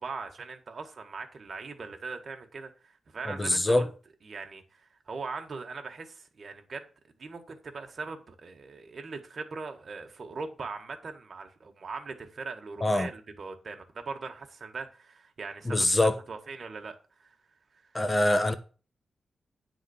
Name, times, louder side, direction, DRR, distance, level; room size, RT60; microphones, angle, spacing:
voice 1, 0.0-3.9 4.2-6.9 7.2-16.0 16.3-17.4 17.7-18.0, right 4 dB, 50° right, 1.7 m, -40 dB
voice 2, 3.3-3.8 12.8-13.1 15.6-16.2 17.9-18.5, left 1 dB, 20° left, 1.2 m, -24 dB
9.6 x 4.1 x 7.2 m
cardioid pair, 85°, 0 cm